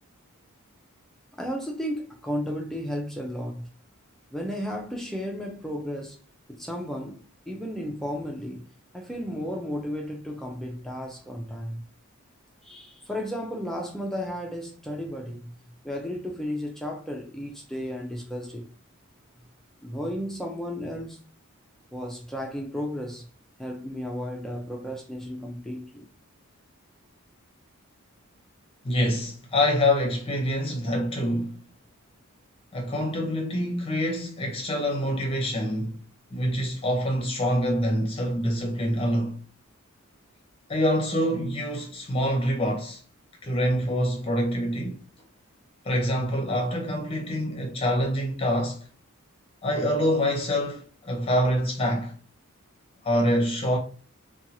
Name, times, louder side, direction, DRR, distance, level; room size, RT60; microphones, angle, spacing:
voice 1, 1.4-3.7 4.3-6.2 6.5-8.7 8.9-11.8 12.6-15.5 15.8-18.7 19.8-21.3 21.9-23.3 23.6-26.1, equal, ahead, 0.4 m, -33 dB
voice 2, 28.8-31.6 32.7-36.0 36.3-39.4 40.7-43.0 43.4-45.0 45.8-48.8 49.6-52.1 53.0-53.8, equal, 25° left, 0.7 m, -26 dB
2.7 x 2.3 x 2.7 m
head